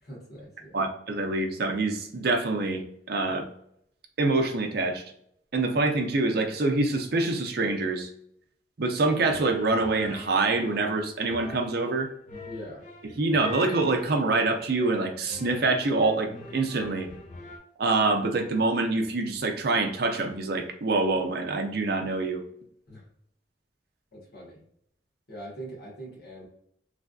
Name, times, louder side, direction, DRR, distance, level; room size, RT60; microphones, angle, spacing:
voice 1, 0.0-0.8 12.5-12.8 22.9-23.0 24.1-24.6 25.3-26.5, right 1 dB, 65° left, -5 dB, 1.3 m, -42 dB
voice 2, 0.7-2.8 3.1-3.5 4.2-5.0 5.5-8.1 8.8-12.1 13.2-17.1 17.8-22.4, right 3 dB, 60° right, 4 dB, 0.5 m, -25 dB
sound 1, 9.0-17.6, left 2 dB, 45° left, 0.9 m, -43 dB
3.2 x 2.5 x 2.3 m, 0.69 s
head